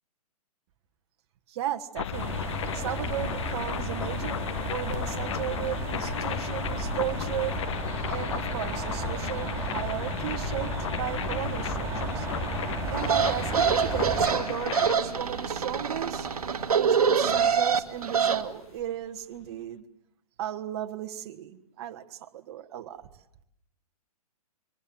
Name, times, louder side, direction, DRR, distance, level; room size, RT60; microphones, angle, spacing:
voice 1, 1.5-2.4 2.7-4.4 4.7-7.6 8.1-12.3 12.9-16.3 16.7-19.8 20.4-23.1, right 11 dB, 45° right, 6 dB, 1.8 m, -35 dB
sound 1, 2.0-18.9, left 10 dB, 55° left, 0.9 m, -35 dB
sound 2, 2.1-14.3, right 4 dB, 15° right, 5.0 m, -34 dB
sound 3, 13.0-18.4, right 6 dB, 70° right, 1.8 m, -25 dB
26.5 x 24.0 x 7.7 m, 0.78 s
figure-of-eight pair, 120°, 19 cm